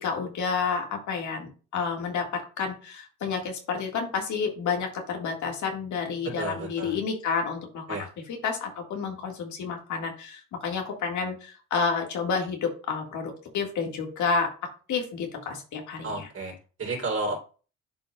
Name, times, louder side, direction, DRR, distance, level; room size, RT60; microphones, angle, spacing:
voice 1, 0.0-7.8 8.3-14.5 14.9-16.3, left 5 dB, 75° left, 2 dB, 1.9 m, -30 dB
voice 2, 6.4-7.0 7.9-8.1 16.0-17.4, right 2 dB, 50° right, -1 dB, 3.6 m, -32 dB
10.5 x 4.2 x 2.4 m, 0.36 s
cardioid pair, 90°, 30 cm